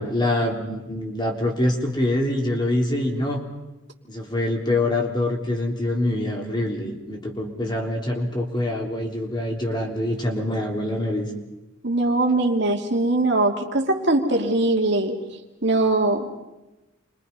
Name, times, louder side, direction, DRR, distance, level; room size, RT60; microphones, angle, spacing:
voice 1, 0.0-3.4 4.1-11.3, left 1 dB, 25° left, 1 dB, 3.4 m, -25 dB
voice 2, 11.8-15.2 15.6-16.3, right 2 dB, 60° right, 2 dB, 2.7 m, -21 dB
29.5 x 24.0 x 5.5 m, 1.0 s
head